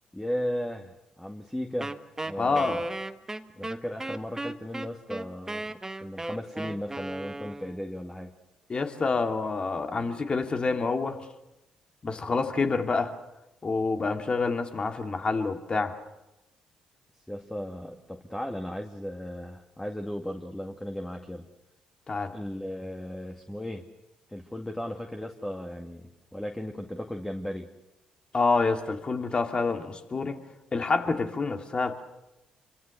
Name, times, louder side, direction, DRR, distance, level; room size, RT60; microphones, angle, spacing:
voice 1, 0.1-2.0 2.3-2.8 3.5-8.4 17.3-21.5 22.3-23.8 24.3-27.7, equal, 10° left, 4 dB, 2.2 m, -36 dB
Wind instrument woodwind instrument, 1.8-7.9, right 2 dB, 15° right, 1.5 m, -36 dB
voice 2, 2.4-2.8 8.7-11.2 12.0-13.1 13.6-16.0 22.1-22.3 28.3-30.3 30.7-32.0, left 4 dB, 35° left, 5 dB, 2.7 m, -27 dB
27.0 x 24.5 x 6.7 m, 0.93 s
hypercardioid pair, 45°, 3 cm